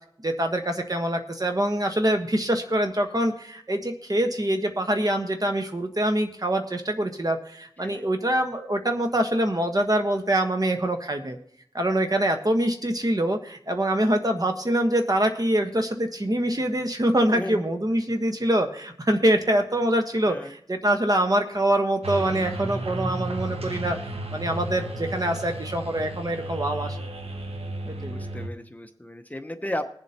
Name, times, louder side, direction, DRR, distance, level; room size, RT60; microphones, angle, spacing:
voice 1, 0.2-11.4 11.7-24.0 24.3-27.0 27.8-28.1, right 1 dB, 40° right, 5 dB, 1.3 m, -24 dB
voice 2, 17.3-17.7 20.3-20.5 28.0-29.9, left 1 dB, 15° left, 7 dB, 0.8 m, -34 dB
sound 1, 22.0-28.5, right 1 dB, 85° right, 1.0 m, -33 dB
21.5 x 7.6 x 2.9 m, 0.67 s
wide cardioid pair, 65°, 10 cm